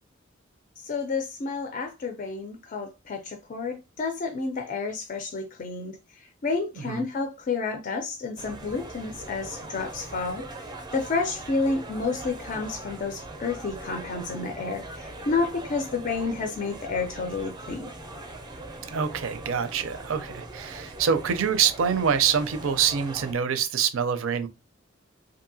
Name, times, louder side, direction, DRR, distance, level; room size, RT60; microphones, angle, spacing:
voice 1, 0.8-17.9, left 4 dB, 45° left, 0.4 m, -30 dB
sound 1, 8.4-23.3, right 2 dB, 20° right, 0.5 m, -41 dB
voice 2, 18.9-24.5, right 7 dB, 80° right, 0.5 m, -25 dB
2.7 x 2.6 x 2.6 m
head